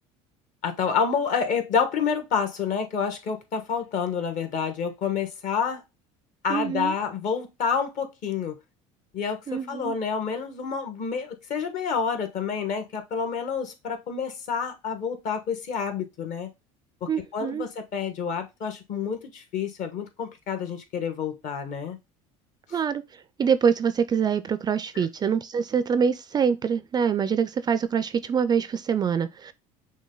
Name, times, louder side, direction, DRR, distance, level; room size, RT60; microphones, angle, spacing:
voice 1, 0.6-5.8 6.4-8.6 9.1-16.5 17.0-22.0 22.7-22.8 24.9-25.1, left 6 dB, 50° left, 1.3 m, -28 dB
voice 2, 6.5-6.9 9.5-10.0 17.1-17.6 22.7-23.0 23.4-29.5, right 7 dB, 25° right, 0.3 m, -25 dB
6.2 x 2.2 x 3.7 m
supercardioid pair, 110°, 16 cm